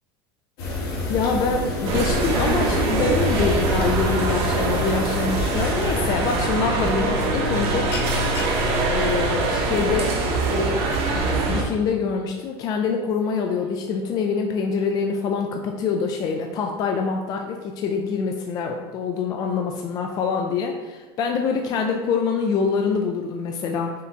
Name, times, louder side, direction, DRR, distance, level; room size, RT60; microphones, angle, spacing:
sound 1, 0.6-6.1, left 1 dB, 65° left, 1.4 m, -27 dB
voice 1, 1.1-7.9 8.9-10.1 10.5-10.8 11.1-23.9, left 5 dB, 30° left, 3 dB, 0.3 m, -25 dB
sound 2, 1.8-11.6, right 2 dB, 45° right, 0.9 m, -23 dB
sound 3, 7.9-14.3, left 3 dB, 85° left, 0.9 m, -42 dB
5.5 x 2.2 x 3.9 m, 1.2 s
supercardioid pair, 145°, 13 cm